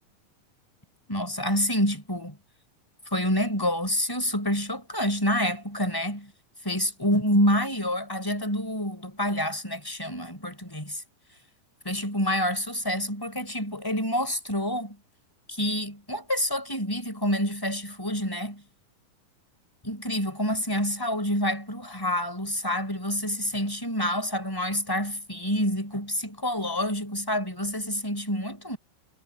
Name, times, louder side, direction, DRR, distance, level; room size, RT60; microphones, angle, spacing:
voice 1, 1.1-2.4 3.1-6.3 6.6-11.0 11.8-15.0 15.5-18.6 19.8-28.8, equal, 5° left, 5.0 m, -27 dB
omnidirectional pair, 4.2 m